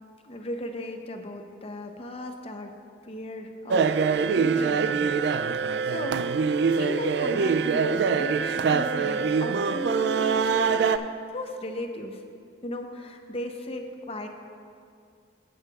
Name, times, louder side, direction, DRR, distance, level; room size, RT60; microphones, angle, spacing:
voice 1, 0.2-2.7 3.0-3.9 4.3-6.2 6.8-12.2 12.6-14.3, left 1 dB, 35° left, 5 dB, 0.7 m, -36 dB
sound 1, 3.7-11.0, right 5 dB, 65° right, 0.3 m, -24 dB
15.5 x 8.7 x 2.4 m, 2.4 s
head